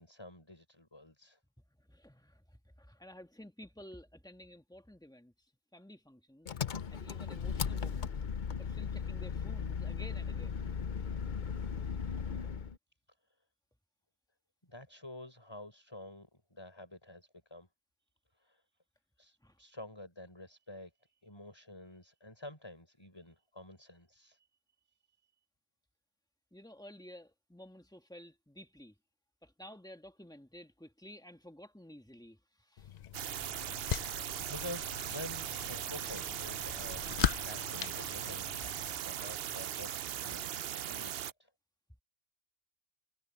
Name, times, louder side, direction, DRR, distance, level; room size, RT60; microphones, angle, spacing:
voice 1, 0.0-1.4 14.6-17.7 18.4-18.6 19.2-20.9 21.2-24.5 33.8-38.6 39.0-41.5, left 1 dB, 20° left, 6.1 m, -49 dB
voice 2, 1.8-2.4 2.8-5.3 5.7-6.5 6.9-8.1 8.6-10.6 19.4-19.6 26.5-28.9 29.4-33.0 38.6-38.7 40.3-40.4, left 1 dB, 5° left, 1.7 m, -53 dB
Engine, 6.5-12.8, left 6 dB, 45° left, 0.8 m, -37 dB
sound 1, 32.8-38.9, left 9 dB, 80° left, 0.3 m, -39 dB
sound 2, 33.1-41.3, right 10 dB, 60° right, 0.7 m, -39 dB
omnidirectional pair, 1.3 m